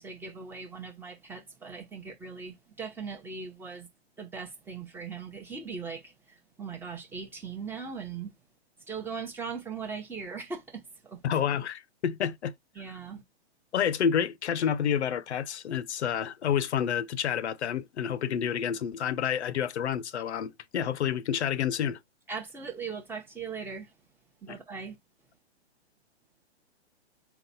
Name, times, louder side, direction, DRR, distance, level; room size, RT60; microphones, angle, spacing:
voice 1, 0.0-3.9 4.2-8.3 8.9-11.2 12.8-13.2 22.3-23.9 24.4-25.0, right 5 dB, 5° right, 0.7 m, -39 dB
voice 2, 11.2-12.5 13.7-22.0 24.5-24.6, left 8 dB, 85° left, 0.6 m, -29 dB
4.0 x 2.3 x 4.0 m
hypercardioid pair, 150°, 33 cm